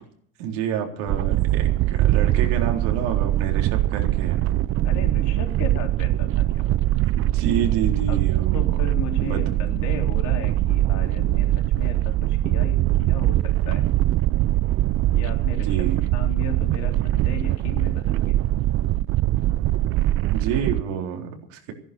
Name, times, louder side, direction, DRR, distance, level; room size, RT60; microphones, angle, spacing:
voice 1, 0.4-4.4 7.2-8.7 9.2-9.6 15.7-16.1 20.3-21.7, right 7 dB, 80° right, 2 dB, 3.9 m, -29 dB
sound 1, 1.1-20.8, right 15 dB, 45° right, 0.5 m, -22 dB
voice 2, 4.8-6.9 8.1-8.2 8.5-13.9 15.1-18.4, left 6 dB, 60° left, 2 dB, 3.7 m, -36 dB
15.0 x 11.0 x 6.9 m, 0.62 s
cardioid pair, 130°, 33 cm